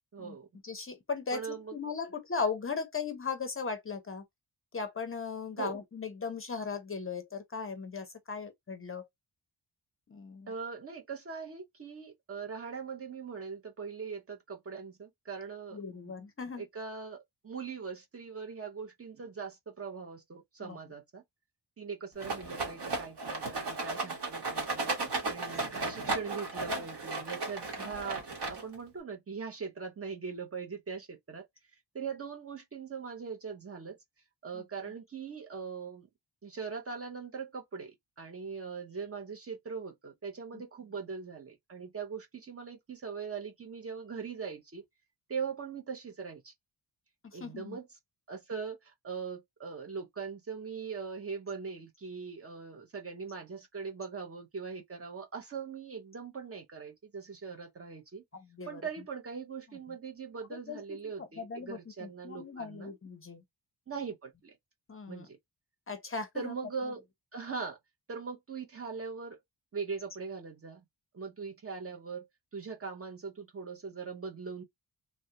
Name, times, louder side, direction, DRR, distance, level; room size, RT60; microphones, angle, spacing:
voice 1, 0.1-0.5 1.3-1.7 5.6-5.7 10.5-16.1 16.6-21.2 21.8-24.9 25.3-31.5 31.9-34.0 34.4-36.1 36.4-44.8 45.3-46.5 47.3-47.9 48.3-58.2 58.7-62.9 63.9-64.6 65.1-65.4 66.3-67.0 67.3-67.8 68.1-69.4 69.7-70.8 71.1-72.3 72.5-74.6, right 5 dB, 35° right, 0.7 m, -41 dB
voice 2, 0.6-1.5 1.7-4.2 4.7-9.1 10.1-10.5 15.7-16.6 20.6-20.8 34.5-34.6 40.5-40.6 47.2-47.8 58.3-58.8 60.7-60.8 61.2-63.4 64.9-65.3 65.9-66.5, left 5 dB, 30° left, 0.5 m, -38 dB
Rattle, 22.2-28.9, right 3 dB, 65° right, 1.4 m, -35 dB
3.2 x 2.3 x 2.7 m
wide cardioid pair, 150°, 44 cm